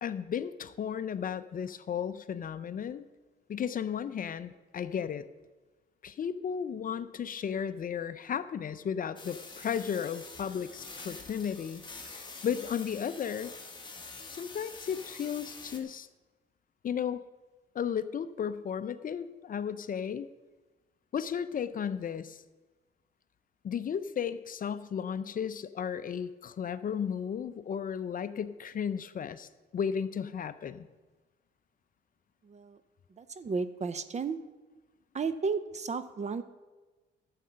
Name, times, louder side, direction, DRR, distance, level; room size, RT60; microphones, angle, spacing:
voice 1, 0.0-3.0 3.5-5.2 6.0-12.1 12.4-13.5 14.3-16.1 16.8-17.2 17.7-20.3 21.1-22.4 23.6-29.5 29.7-30.9, left 8 dB, 45° left, 13 dB, 0.5 m, -34 dB
sound 1, 9.2-15.8, left 3 dB, 25° left, 1.7 m, -46 dB
voice 2, 32.4-32.8 33.2-34.4 35.1-36.4, right 5 dB, 35° right, 13 dB, 0.7 m, -33 dB
11.5 x 7.4 x 5.7 m, 1.2 s
cardioid pair, 90°, 20 cm